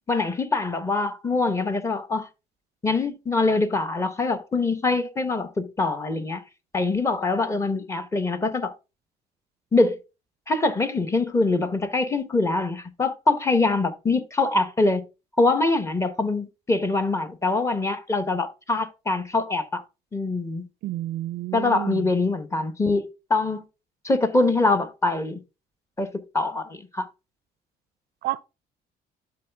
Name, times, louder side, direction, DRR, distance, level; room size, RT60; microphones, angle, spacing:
voice 1, 0.1-2.3 2.8-6.4 6.7-8.7 9.7-10.0 10.5-15.0 15.4-19.8 20.1-20.7 21.5-23.6 24.0-25.4 26.0-27.1, left 3 dB, 15° left, 0.9 m, -24 dB
voice 2, 20.8-22.0 28.2-28.4, right 15 dB, 70° right, 0.4 m, -30 dB
11.5 x 4.0 x 3.4 m
cardioid pair, 110°, 17 cm